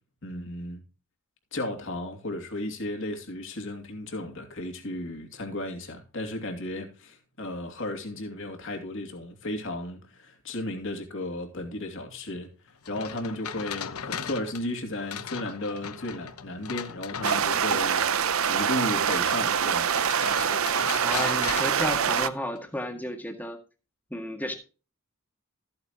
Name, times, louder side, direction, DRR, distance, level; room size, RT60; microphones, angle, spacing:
voice 1, 0.2-0.8 1.5-12.5 12.9-19.9, left 1 dB, 60° left, 2.7 m, -34 dB
sound 1, 12.8-17.9 19.8-22.6, left 7 dB, 85° left, 0.9 m, -38 dB
sound 2, 17.2-22.3, right 7 dB, 70° right, 0.7 m, -25 dB
voice 2, 21.0-23.6 24.1-24.5, left 1 dB, 10° left, 1.8 m, -33 dB
14.0 x 8.8 x 3.0 m
head